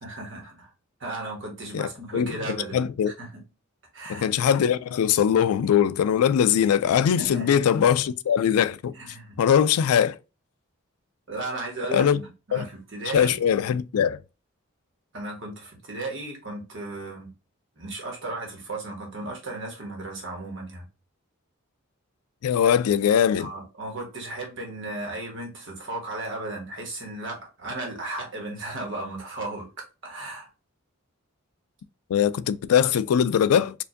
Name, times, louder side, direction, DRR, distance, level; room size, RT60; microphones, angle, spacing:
voice 1, 0.0-0.7 1.0-2.8 3.1-3.4 3.9-4.3 7.2-7.6 8.9-9.4 11.3-12.2 12.5-13.3 15.1-17.3 17.8-20.9 23.4-30.5, right 2 dB, 55° right, 1.3 m, -35 dB
voice 2, 1.7-2.4 2.7-3.1 4.1-8.9 9.4-10.2 11.9-12.2 12.5-12.7 13.1-14.2 22.4-23.5 32.1-33.8, left 8 dB, 90° left, 0.3 m, -21 dB
4.5 x 2.5 x 2.6 m
head